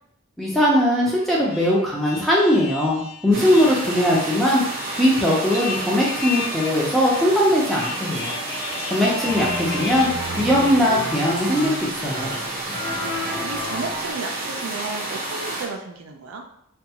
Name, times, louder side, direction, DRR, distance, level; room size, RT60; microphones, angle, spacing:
voice 1, 0.4-8.3 8.9-10.1 10.4-12.3, equal, ahead, -5 dB, 0.6 m, -20 dB
sound 1, 1.2-10.0, left 4 dB, 45° left, 1.0 m, -34 dB
sound 2, 3.3-15.7, right 2 dB, 45° right, 0.7 m, -31 dB
voice 2, 3.7-4.2 9.2-10.5 13.4-16.4, right 4 dB, 85° right, 4 dB, 0.4 m, -35 dB
sound 3, 9.0-14.1, equal, 70° left, 0.9 m, -31 dB
2.5 x 2.2 x 2.8 m, 0.73 s
head